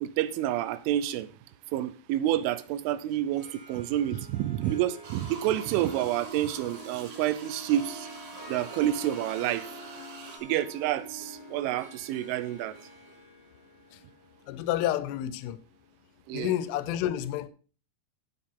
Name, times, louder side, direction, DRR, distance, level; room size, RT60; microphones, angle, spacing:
voice 1, 0.0-1.3 1.7-8.1 8.5-9.7 10.4-12.8 16.3-16.5, right 12 dB, 85° right, 3.3 m, -29 dB
Harp, 3.2-16.1, right 1 dB, 10° right, 2.6 m, -47 dB
sound 1, 5.0-10.4, right 4 dB, 65° right, 4.2 m, -46 dB
voice 2, 14.5-15.6 16.3-17.5, left 12 dB, 90° left, 3.3 m, -29 dB
14.5 x 7.4 x 3.8 m
omnidirectional pair, 5.5 m